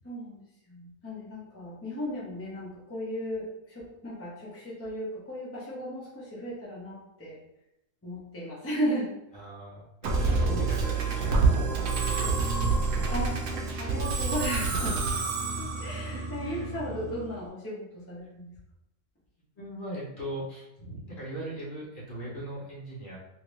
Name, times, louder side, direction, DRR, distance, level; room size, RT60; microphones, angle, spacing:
voice 1, 0.0-7.4 8.0-9.1 13.1-13.4 13.8-15.2 15.5-18.5, equal, 15° left, -7 dB, 0.7 m, -35 dB
voice 2, 9.3-11.5 12.0-13.1 16.4-16.7 19.6-23.2, right 1 dB, 40° left, -6 dB, 1.1 m, -39 dB
Musical instrument, 10.0-17.4, right 4 dB, 85° right, 1.0 m, -28 dB
2.8 x 2.8 x 3.1 m, 0.86 s
omnidirectional pair, 1.4 m